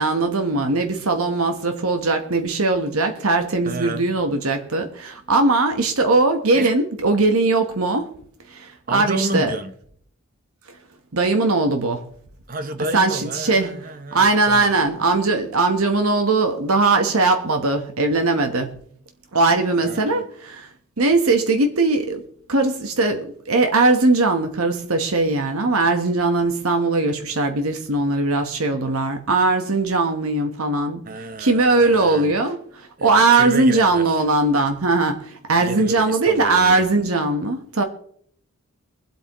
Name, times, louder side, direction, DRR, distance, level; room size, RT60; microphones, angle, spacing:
voice 1, 0.0-8.1 8.5-9.5 11.1-12.0 12.9-13.7 14.1-18.8 19.3-20.7 21.0-22.2 22.5-37.8, right 3 dB, 85° right, 1.2 m, -20 dB
voice 2, 3.7-4.1 6.5-6.7 8.9-9.7 12.5-14.8 19.8-20.3 31.0-32.3 33.0-34.2 35.6-36.9, right 2 dB, 40° right, 0.8 m, -30 dB
24.0 x 8.2 x 3.1 m
head